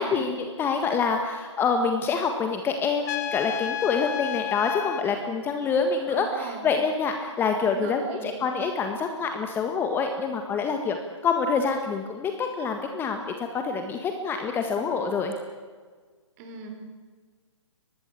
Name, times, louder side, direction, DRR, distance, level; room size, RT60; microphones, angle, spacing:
voice 1, 0.0-11.0 11.2-15.3, left 5 dB, 15° left, 5 dB, 1.7 m, -26 dB
Trumpet, 3.0-5.1, left 11 dB, 35° left, 1.3 m, -31 dB
voice 2, 6.1-6.7 7.6-8.4 16.4-16.7, right 5 dB, 30° right, 5 dB, 5.3 m, -39 dB
24.0 x 19.5 x 8.4 m, 1.5 s
figure-of-eight pair, 140°, 16 cm